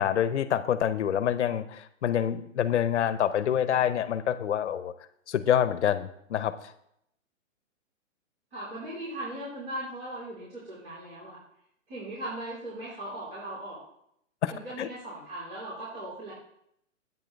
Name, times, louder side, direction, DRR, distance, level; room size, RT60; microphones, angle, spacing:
voice 1, 0.0-4.9 5.3-6.7 14.4-14.5 14.8-14.9, left 9 dB, 60° left, 13 dB, 0.8 m, -26 dB
voice 2, 8.5-11.4 11.9-13.8 14.5-16.3, right 1 dB, 45° right, -9 dB, 4.5 m, -38 dB
10.5 x 8.8 x 3.4 m, 0.74 s
hypercardioid pair, 170°, 39 cm